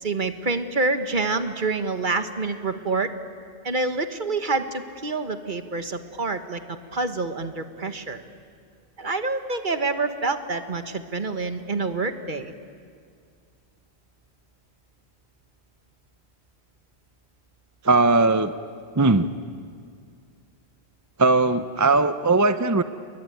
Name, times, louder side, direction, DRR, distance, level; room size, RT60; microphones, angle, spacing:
voice 1, 0.0-3.1 3.6-8.2 9.0-12.5, right 3 dB, 50° right, 9 dB, 1.5 m, -27 dB
voice 2, 17.8-18.5 19.0-19.3 21.2-22.8, right 3 dB, 20° right, 11 dB, 0.5 m, -19 dB
30.0 x 21.5 x 9.3 m, 2.2 s
omnidirectional pair, 1.1 m